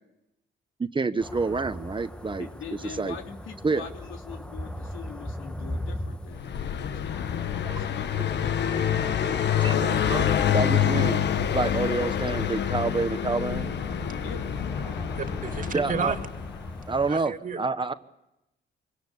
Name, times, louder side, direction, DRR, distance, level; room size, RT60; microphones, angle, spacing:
voice 1, 0.8-2.5 3.0-3.2 3.6-3.8 7.7-7.8 9.6-11.2 11.5-13.8 15.7-16.1 16.9-17.9, right 4 dB, 25° right, 11 dB, 1.1 m, -28 dB
sound 1, 1.2-17.1, left 1 dB, 5° left, 1.3 m, -39 dB
voice 2, 2.4-6.5 6.8-8.8 12.3-12.5 14.2-14.5, left 7 dB, 80° left, 4 dB, 3.0 m, -42 dB
Car passing by, 6.3-16.9, left 9 dB, 60° left, 1.3 m, -27 dB
voice 3, 13.9-14.3 14.9-16.2 17.1-17.6, right 5 dB, 40° right, 7 dB, 2.4 m, -33 dB
24.5 x 18.0 x 9.9 m, 0.90 s
cardioid pair, 90°, 20 cm